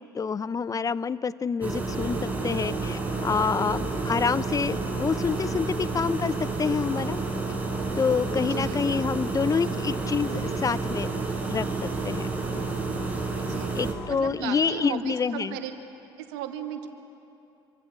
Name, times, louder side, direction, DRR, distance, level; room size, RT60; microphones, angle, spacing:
voice 1, 0.1-2.2 2.4-7.2 8.0-11.1 11.5-11.7 12.0-12.3 13.8-15.6, left 5 dB, 30° left, 16 dB, 0.7 m, -27 dB
sound 1, 1.6-13.9, right 3 dB, 15° right, 5.9 m, -30 dB
voice 2, 8.5-8.8 13.4-13.8 14.1-15.7 16.2-16.9, right 10 dB, 70° right, 5 dB, 2.2 m, -35 dB
26.5 x 24.0 x 7.5 m, 2.8 s
hypercardioid pair, 65°, 12 cm